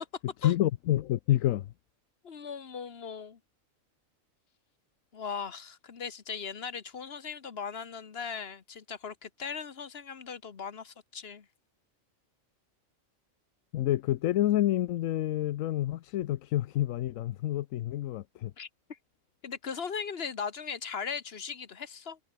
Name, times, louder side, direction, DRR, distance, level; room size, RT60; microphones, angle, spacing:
voice 1, 0.4-1.7 13.7-18.5, left 14 dB, 80° left, 1.0 m, -28 dB
voice 2, 2.2-3.4 5.1-11.5 18.6-18.7 19.4-22.2, left 6 dB, 50° left, 1.4 m, -38 dB
omnidirectional pair, 1.4 m